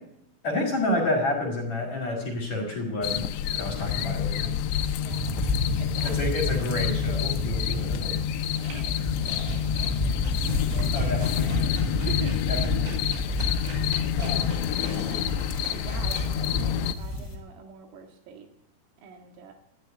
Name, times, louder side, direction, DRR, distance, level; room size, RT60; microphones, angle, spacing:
voice 1, 0.4-3.2 3.5-4.5 6.0-8.2 10.9-11.6 12.5-13.0 14.2-14.6, left 1 dB, 45° left, 3 dB, 2.8 m, -29 dB
sound 1, 3.0-16.9, left 10 dB, 85° left, 2.5 m, -28 dB
voice 2, 5.0-5.4 5.8-6.3 8.5-11.0 11.3-12.4 14.4-14.8 15.1-15.3 15.7-18.5 19.0-19.5, right 5 dB, 80° right, 3 dB, 4.4 m, -44 dB
sound 2, 5.1-17.3, left 2 dB, 15° left, 1.0 m, -30 dB
sound 3, 8.6-16.3, right 2 dB, 60° right, 7.3 m, -44 dB
13.0 x 11.5 x 9.0 m, 0.81 s
omnidirectional pair, 5.9 m